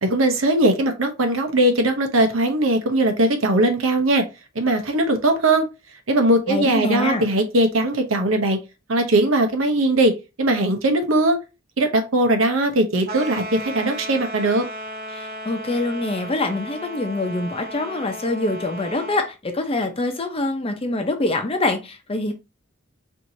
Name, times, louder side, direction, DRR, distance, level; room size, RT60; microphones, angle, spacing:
voice 1, 0.0-4.2 4.5-5.7 6.1-8.6 8.9-11.4 11.8-14.6, right 1 dB, 85° right, 0.8 m, -20 dB
voice 2, 6.5-7.3 15.1-22.3, left 2 dB, 30° left, 0.7 m, -25 dB
sound 1, 13.0-19.3, equal, 50° right, 0.6 m, -35 dB
4.5 x 2.7 x 2.7 m
head